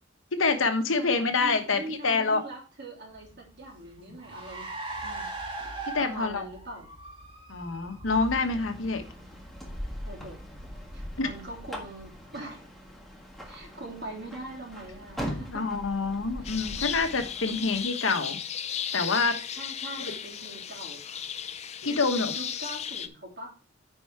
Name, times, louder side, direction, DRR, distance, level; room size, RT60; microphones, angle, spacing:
voice 1, 0.3-2.4 5.9-6.4 7.5-9.0 11.2-11.3 15.5-18.4 18.9-19.4 21.8-22.3, left 4 dB, 75° left, 6 dB, 1.2 m, -26 dB
voice 2, 0.9-4.7 5.0-5.3 6.0-6.9 10.0-10.4 10.9-12.7 13.5-15.6 16.4-16.9 17.5-17.7 19.5-21.2 21.8-23.5, right 2 dB, 55° right, 0 dB, 3.0 m, -42 dB
Car, 3.1-10.9, right 2 dB, 25° right, 1.6 m, -41 dB
sound 1, 8.1-17.8, equal, ahead, 1.6 m, -41 dB
sound 2, 16.4-23.1, left 8 dB, 35° left, 0.5 m, -35 dB
9.3 x 4.6 x 4.7 m, 0.35 s
head